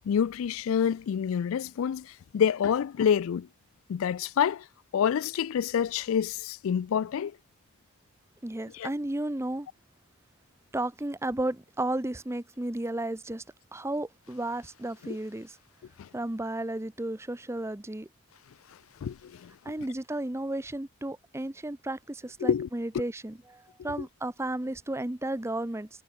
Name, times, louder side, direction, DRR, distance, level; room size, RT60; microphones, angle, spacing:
voice 1, 0.1-3.5 3.9-4.7 4.9-7.4 8.7-8.9 15.0-15.2 16.0-16.1 19.0-19.5 22.4-22.7, left 8 dB, 65° left, 0.3 m, -27 dB
voice 2, 8.4-9.7 10.7-13.4 13.7-15.6 16.1-18.1 19.6-25.9, right 1 dB, 10° right, 0.6 m, -33 dB
Water, 14.1-16.9 18.1-20.9, left 7 dB, 80° left, 7.8 m, -65 dB
head